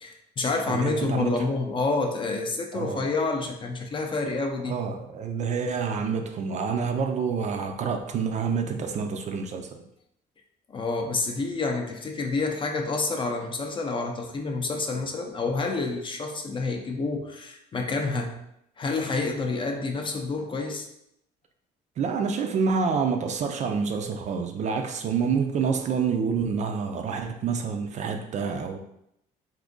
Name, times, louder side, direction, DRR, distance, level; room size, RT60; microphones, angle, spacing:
voice 1, 0.0-4.8 10.7-18.3 18.8-20.9, left 3 dB, 30° left, 3 dB, 0.5 m, -28 dB
voice 2, 0.7-1.4 2.7-3.1 4.7-9.8 22.0-28.8, right 5 dB, 45° right, 5 dB, 0.4 m, -28 dB
2.6 x 2.5 x 3.7 m, 0.77 s
cardioid pair, 110°, 17 cm